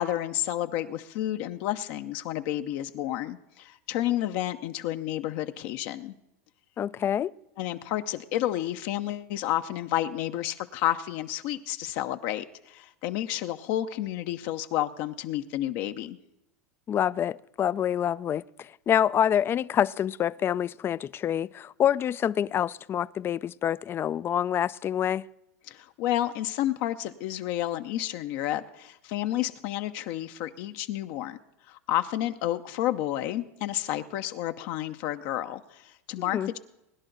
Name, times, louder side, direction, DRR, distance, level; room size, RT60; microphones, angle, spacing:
voice 1, 0.0-6.1 7.6-16.2 25.7-31.4 31.7-36.6, left 13 dB, 55° left, 0.7 m, -30 dB
voice 2, 6.8-7.3 16.9-25.3 36.2-36.5, left 9 dB, 30° left, 0.4 m, -27 dB
21.5 x 10.5 x 3.9 m
hypercardioid pair, 105°, 8 cm